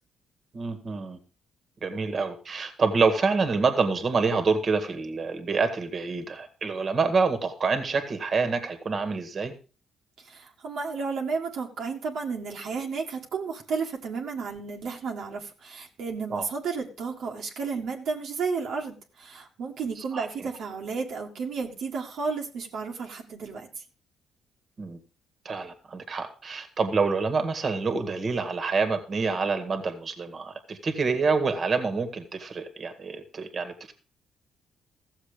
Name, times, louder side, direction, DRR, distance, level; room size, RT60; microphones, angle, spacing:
voice 1, 0.5-1.2 1.8-9.5 16.3-16.5 20.1-20.3 24.8-25.0 25.5-33.9, right 4 dB, 45° right, 8 dB, 2.0 m, -27 dB
voice 2, 10.2-23.8, right 5 dB, 70° right, 0 dB, 1.9 m, -32 dB
15.0 x 7.3 x 5.1 m, 0.35 s
cardioid pair, 90°, 0 cm